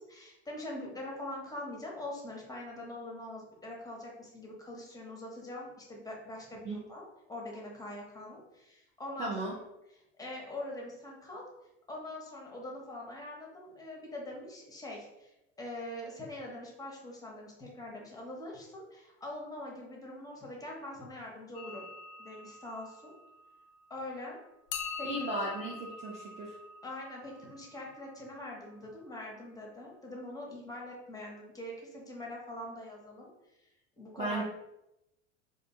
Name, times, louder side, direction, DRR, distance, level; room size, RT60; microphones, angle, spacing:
voice 1, 0.0-9.3 9.9-11.4 11.9-21.9 22.2-23.1 23.9-24.4 25.0-25.3 26.8-33.3 34.0-34.4, left 1 dB, 10° left, -2 dB, 0.7 m, -43 dB
voice 2, 9.2-9.5 25.0-26.5 34.2-34.4, right 2 dB, 20° right, -3 dB, 0.4 m, -35 dB
sound 1, 21.5-24.0 24.7-28.6, left 4 dB, 45° left, 0.4 m, -45 dB
2.5 x 2.1 x 2.8 m, 0.89 s
hypercardioid pair, 90°, 36 cm